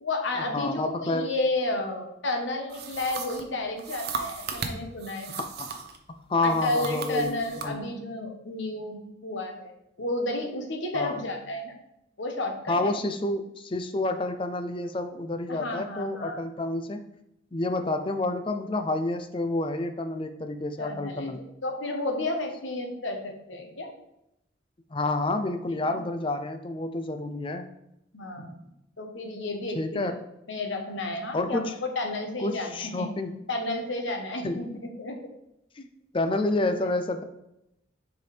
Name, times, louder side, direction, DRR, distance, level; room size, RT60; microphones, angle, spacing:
voice 1, 0.0-5.3 6.4-9.7 10.0-11.7 12.2-12.9 15.5-16.4 20.8-21.3 21.6-23.9 25.7-26.0 28.1-28.6 29.0-30.1 30.5-33.1 33.5-34.7 35.0-35.2, left 2 dB, 75° left, 3 dB, 1.1 m, -32 dB
voice 2, 0.5-1.3 5.4-5.7 6.3-7.8 10.9-11.2 12.7-17.0 17.5-21.5 24.9-27.7 29.7-30.2 31.3-31.7 32.4-33.4 34.4-34.7 35.8-35.9 36.1-37.2, left 2 dB, 25° left, 8 dB, 0.4 m, -29 dB
sound 1, 2.7-6.0 6.4-7.7, right 5 dB, 55° right, 0.7 m, -36 dB
6.7 x 4.7 x 3.3 m, 0.83 s
head